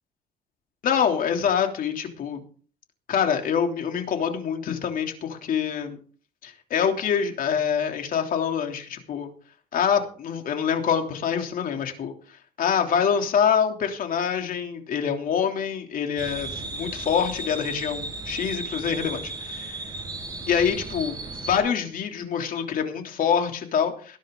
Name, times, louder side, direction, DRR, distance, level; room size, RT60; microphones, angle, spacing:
voice 1, 0.8-2.4 3.1-6.0 6.4-9.3 9.7-12.1 12.6-19.8 20.5-21.2 21.4-24.2, left 7 dB, 55° left, 4 dB, 3.2 m, -25 dB
sound 1, 16.2-21.6, right 2 dB, 25° right, 6.8 m, -35 dB
19.0 x 10.5 x 3.9 m, 0.42 s
cardioid pair, 110°, 17 cm